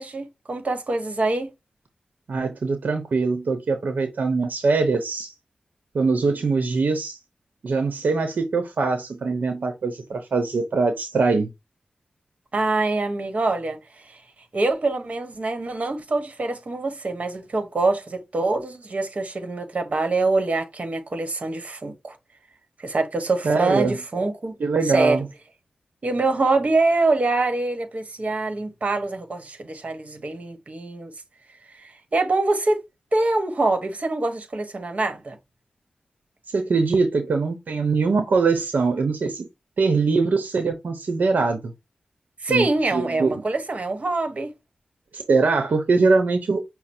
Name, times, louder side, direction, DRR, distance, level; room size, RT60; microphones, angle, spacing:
voice 1, 0.0-1.5 12.5-14.2 14.5-22.2 22.8-24.5 24.8-25.2 26.0-31.1 31.8-32.8 33.1-35.4 42.4-44.5, right 2 dB, 55° right, 1.1 m, -24 dB
voice 2, 2.3-5.3 5.9-7.2 7.6-11.5 23.4-24.0 24.6-25.3 36.5-39.5 39.8-41.7 42.5-43.4 45.1-46.6, right 4 dB, 75° right, 0.8 m, -22 dB
5.8 x 2.0 x 4.3 m
cardioid pair, 60°, 3 cm